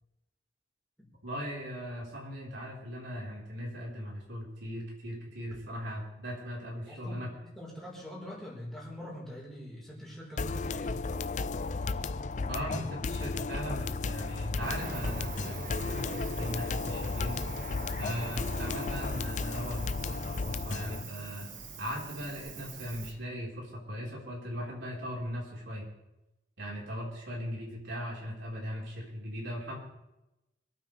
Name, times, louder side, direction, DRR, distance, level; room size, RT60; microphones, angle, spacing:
voice 1, 1.2-7.3 12.5-17.5 18.0-21.5 21.8-25.9 26.6-29.8, equal, 75° right, -3 dB, 4.3 m, -39 dB
voice 2, 6.8-11.0, equal, ahead, -5 dB, 4.5 m, -44 dB
sound 1, 10.4-21.0, left 3 dB, 40° left, 0.4 m, -34 dB
Cricket, 14.6-23.1, right 3 dB, 45° right, 1.4 m, -43 dB
26.5 x 9.2 x 3.4 m, 0.94 s
head